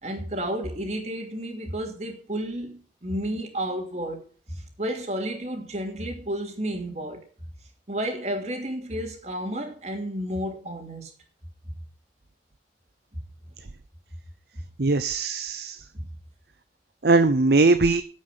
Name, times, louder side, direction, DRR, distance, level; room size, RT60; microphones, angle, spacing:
voice 1, 0.0-7.2 7.9-11.1 13.1-13.2 14.5-14.6 15.9-16.1, right 1 dB, 40° right, 2.9 m, -32 dB
voice 2, 14.8-15.8 17.0-18.0, right 3 dB, 65° right, 0.7 m, -20 dB
9.6 x 8.3 x 7.0 m
head